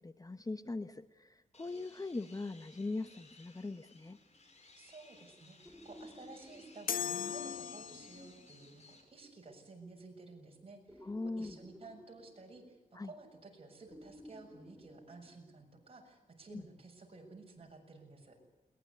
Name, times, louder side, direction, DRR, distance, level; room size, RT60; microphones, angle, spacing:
voice 1, 0.0-4.2 11.0-11.6 12.9-13.1 16.5-16.6, left 3 dB, 25° left, 11 dB, 1.0 m, -41 dB
sound 1, 1.5-9.0, left 3 dB, 50° left, 5.2 m, -61 dB
sound 2, 3.8-4.5 5.6-9.2 10.9-13.1 13.9-15.9 17.6-17.7, equal, 5° right, 5.9 m, -56 dB
voice 2, 4.8-18.4, right 3 dB, 40° right, 2 dB, 7.1 m, -54 dB
sound 3, 6.9-8.4, left 8 dB, 85° left, 1.4 m, -38 dB
21.5 x 20.5 x 9.7 m, 0.97 s
wide cardioid pair, 110°, 14 cm